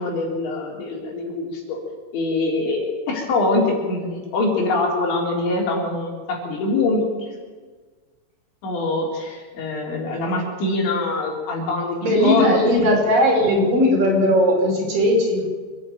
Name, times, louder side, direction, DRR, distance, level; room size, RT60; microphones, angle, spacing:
voice 1, 0.0-1.8 2.1-7.3 8.6-13.0, left 2 dB, 75° left, 0 dB, 6.1 m, -24 dB
voice 2, 12.0-15.4, equal, 50° right, -2 dB, 7.0 m, -18 dB
25.5 x 11.0 x 9.3 m, 1.4 s
omnidirectional pair, 5.3 m